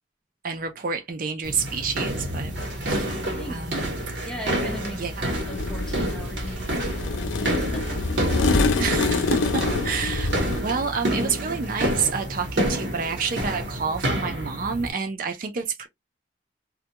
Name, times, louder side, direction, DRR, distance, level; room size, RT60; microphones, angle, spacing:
voice 1, 0.4-2.6 2.8-3.1 3.5-4.0 5.0-5.4 8.8-10.4 10.6-15.9, right 5 dB, 45° right, 0.4 m, -29 dB
sound 1, 1.4-14.9, right 1 dB, 70° right, 1.0 m, -29 dB
sound 2, 2.6-11.0, left 1 dB, 60° left, 0.8 m, -47 dB
voice 2, 4.2-8.8, right 1 dB, 5° left, 0.6 m, -38 dB
sound 3, 5.2-10.6, left 3 dB, 85° left, 0.5 m, -26 dB
2.2 x 2.2 x 2.8 m
head